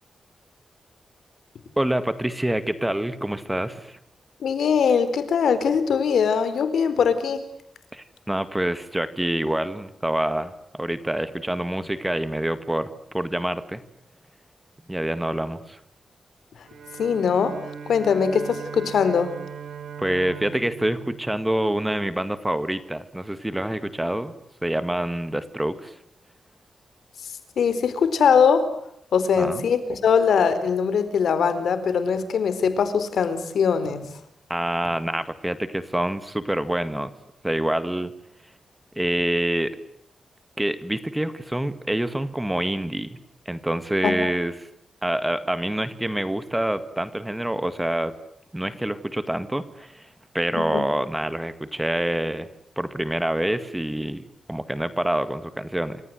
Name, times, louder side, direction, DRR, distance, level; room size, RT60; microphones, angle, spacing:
voice 1, 1.8-4.0 7.9-13.8 14.9-15.8 20.0-24.3 24.6-26.0 29.4-29.6 34.5-37.1 37.4-38.1 39.0-39.8 40.6-43.2 43.5-44.7 45.0-48.1 48.5-50.1 50.3-52.5 52.8-56.0, right 1 dB, 5° right, 12 dB, 1.9 m, -26 dB
voice 2, 4.4-7.4 17.0-17.6 17.9-19.3 27.6-28.7 29.1-34.1 44.0-44.3 50.5-50.8, left 6 dB, 80° left, 12 dB, 4.4 m, -21 dB
Bowed string instrument, 16.6-22.1, right 7 dB, 85° right, 3.5 m, -39 dB
28.0 x 26.0 x 8.0 m, 0.73 s
wide cardioid pair, 155°, 0 cm